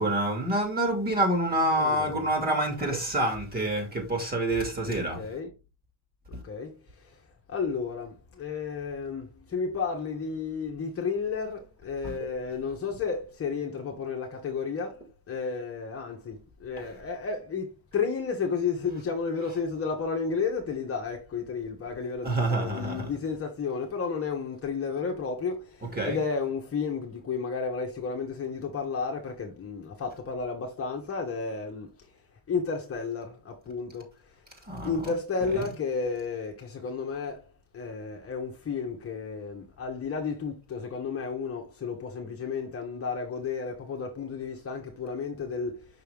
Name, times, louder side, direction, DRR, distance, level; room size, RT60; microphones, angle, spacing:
voice 1, 0.0-5.2 12.0-12.1 22.2-23.1 26.0-26.2 34.7-35.1 35.4-35.7, right 1 dB, 25° right, 2.7 m, -27 dB
voice 2, 1.7-2.3 5.1-5.5 6.4-7.1 7.5-31.9 32.5-34.1 34.8-37.4 37.7-45.9, left 5 dB, 35° left, 1.4 m, -32 dB
5.9 x 5.7 x 3.6 m
cardioid pair, 150°, 40 cm